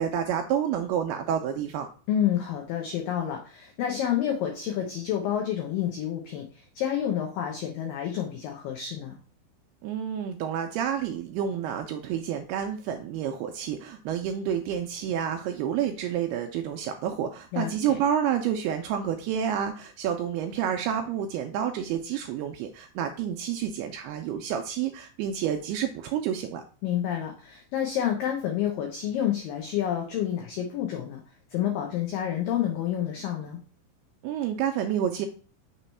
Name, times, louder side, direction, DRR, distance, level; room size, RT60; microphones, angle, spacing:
voice 1, 0.0-1.9 9.8-26.6 34.2-35.3, right 9 dB, 85° right, 5 dB, 2.3 m, -29 dB
voice 2, 2.1-9.2 17.5-18.0 26.8-31.2 31.5-33.6, left 10 dB, 85° left, 2 dB, 2.0 m, -29 dB
6.5 x 3.0 x 5.4 m, 0.39 s
omnidirectional pair, 5.0 m